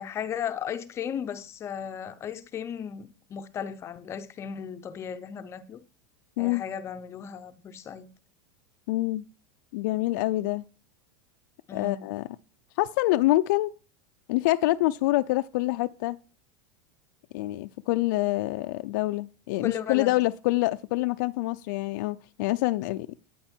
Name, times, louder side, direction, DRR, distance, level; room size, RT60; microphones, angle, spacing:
voice 1, 0.0-5.8 6.4-8.1 11.7-12.0 19.6-20.1, left 8 dB, 25° left, 0.7 m, -35 dB
voice 2, 8.9-9.2 9.7-10.6 11.7-12.3 12.8-13.7 14.3-16.2 17.3-23.1, left 18 dB, 65° left, 0.5 m, -26 dB
14.5 x 9.3 x 4.4 m
supercardioid pair, 155°, 11 cm